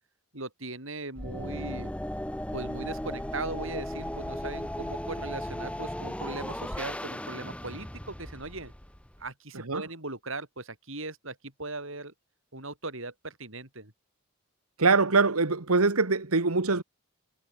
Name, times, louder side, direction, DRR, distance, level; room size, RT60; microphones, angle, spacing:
voice 1, 0.3-1.9 2.5-8.7 9.2-12.1 12.5-13.9, right 2 dB, 65° right, 6.8 m, -39 dB
sound 1, 1.2-9.3, left 1 dB, 5° left, 1.4 m, -36 dB
voice 2, 14.8-16.8, right 3 dB, 90° right, 1.7 m, -23 dB
head